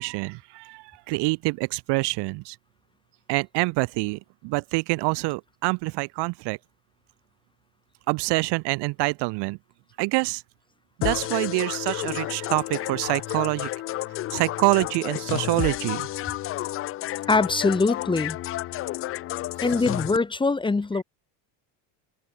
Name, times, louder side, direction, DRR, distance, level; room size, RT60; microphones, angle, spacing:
voice 1, 0.0-2.6 3.3-6.6 8.1-9.6 10.0-10.4 11.0-13.7 14.3-16.1, right 25 dB, 55° right, 1.7 m, -26 dB
sound 1, 11.0-20.2, left 15 dB, 30° left, 0.6 m, -31 dB
voice 2, 17.3-18.4 19.6-21.0, left 3 dB, 10° left, 2.6 m, -23 dB
cardioid pair, 165°, 49 cm